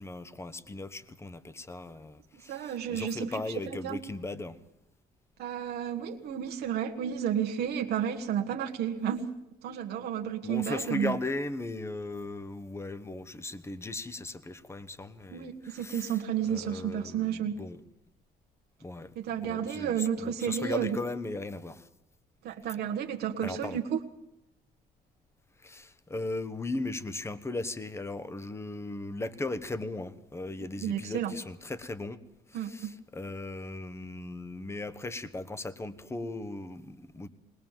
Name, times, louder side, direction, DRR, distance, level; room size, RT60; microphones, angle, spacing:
voice 1, 0.0-4.6 10.4-16.2 16.5-17.8 18.8-19.1 19.4-21.9 23.4-23.8 25.6-32.2 32.5-37.3, left 2 dB, 15° left, 1.1 m, -37 dB
voice 2, 2.5-4.0 5.4-9.3 9.6-11.1 15.3-17.6 19.1-21.0 22.4-24.0 30.8-31.3 32.5-32.9, right 9 dB, 70° right, 1.5 m, -32 dB
20.5 x 20.0 x 7.4 m
cardioid pair, 110°, 17 cm